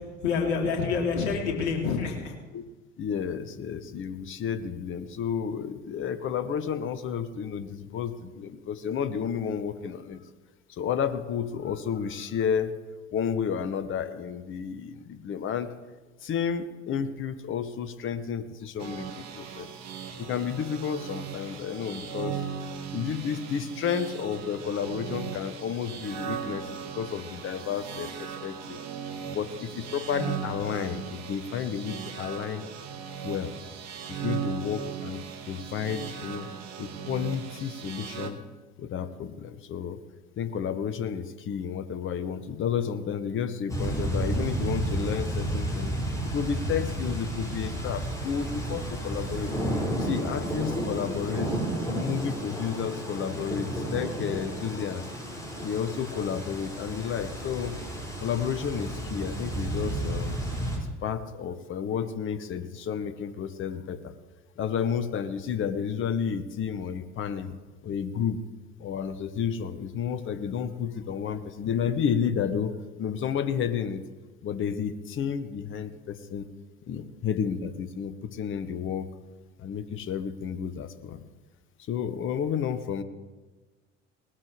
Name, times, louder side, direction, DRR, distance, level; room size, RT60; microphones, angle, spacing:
voice 1, 0.2-2.3, left 5 dB, 65° left, 1 dB, 2.9 m, -27 dB
voice 2, 3.0-10.2 10.7-12.7 13.1-15.7 16.2-19.7 20.2-22.5 22.9-28.8 29.3-32.7 33.2-33.5 34.1-35.2 35.5-36.5 36.8-38.4 38.8-40.0 40.4-45.9 46.2-49.5 49.9-51.5 51.9-55.0 55.6-57.8 58.2-60.4 60.7-64.1 64.6-67.6 67.8-68.4 68.8-74.0 74.4-76.5 76.9-79.1 79.6-81.2 81.9-83.0, left 7 dB, 35° left, 11 dB, 1.0 m, -31 dB
sound 1, 18.8-38.3, right 7 dB, 50° right, 1.8 m, -38 dB
sound 2, 43.7-60.8, right 1 dB, 10° left, 5.7 m, -32 dB
19.0 x 13.0 x 3.3 m, 1.2 s
figure-of-eight pair, 65°, 36 cm